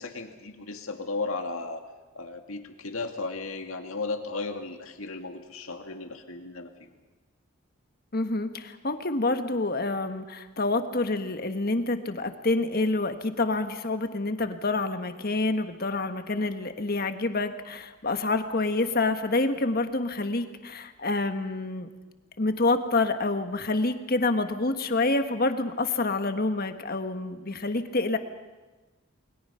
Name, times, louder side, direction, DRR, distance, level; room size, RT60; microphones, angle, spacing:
voice 1, 0.0-1.8 2.1-6.7, left 3 dB, 85° left, 5 dB, 2.1 m, -35 dB
voice 2, 8.1-21.9 22.4-28.2, left 2 dB, 45° left, 8 dB, 1.5 m, -27 dB
29.0 x 21.5 x 5.7 m, 1.2 s
head